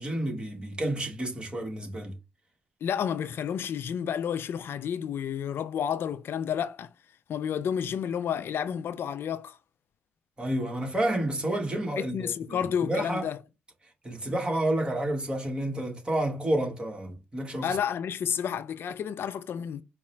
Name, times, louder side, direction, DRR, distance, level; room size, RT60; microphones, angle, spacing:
voice 1, 0.0-2.2 10.4-13.2 14.0-17.8, right 1 dB, 25° right, 1.4 m, -30 dB
voice 2, 2.8-6.9 7.3-9.6 12.0-13.4 17.6-19.8, left 8 dB, 70° left, 0.4 m, -30 dB
4.6 x 2.1 x 4.3 m
cardioid pair, 75°, 4 cm